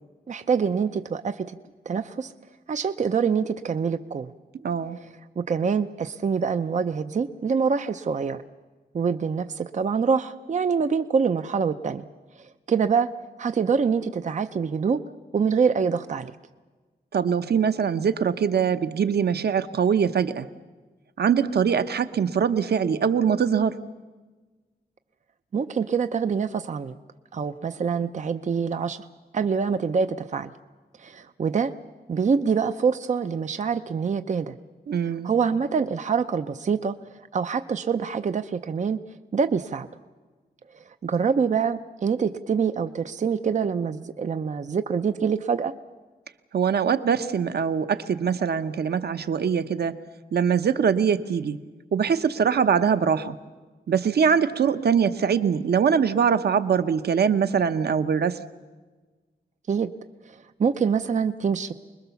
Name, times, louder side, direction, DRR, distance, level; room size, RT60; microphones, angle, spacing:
voice 1, 0.3-1.6 1.9-2.3 2.7-4.3 5.4-8.4 8.9-12.0 12.7-13.1 13.4-15.0 15.3-16.3 25.5-26.9 27.3-29.0 29.3-30.5 31.0-31.7 32.1-34.5 35.2-36.9 37.3-39.0 39.3-39.9 41.0-45.7 59.7-59.9 60.6-61.7, right 6 dB, 45° right, 10 dB, 0.7 m, -25 dB
voice 2, 4.6-5.0 17.1-20.5 21.2-23.8 34.9-35.3 46.5-50.0 50.3-51.6 51.9-53.4 53.9-58.4, right 7 dB, 75° right, 11 dB, 0.9 m, -23 dB
25.5 x 21.5 x 7.1 m, 1.3 s
wide cardioid pair, 120°, 17 cm